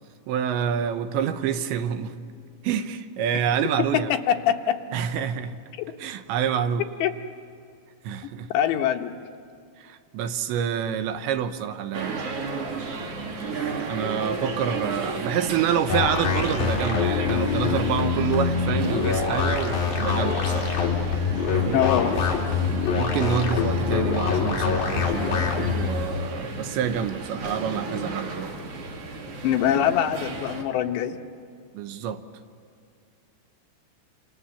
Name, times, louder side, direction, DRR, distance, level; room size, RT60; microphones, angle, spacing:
voice 1, 0.3-2.1 2.6-4.1 4.9-5.6 6.0-6.8 8.0-8.5 9.8-12.2 13.9-20.7 21.5-21.8 23.0-28.5 31.7-32.2, right 8 dB, 80° right, 3.2 m, -27 dB
voice 2, 3.9-4.8 7.0-7.2 8.5-9.1 21.7-22.2 29.4-31.2, left 10 dB, 75° left, 3.1 m, -23 dB
sound 1, 11.9-30.6, right 3 dB, 45° right, 2.1 m, -34 dB
sound 2, 15.9-25.9, left 6 dB, 55° left, 4.4 m, -25 dB
29.0 x 27.5 x 7.1 m
omnidirectional pair, 5.3 m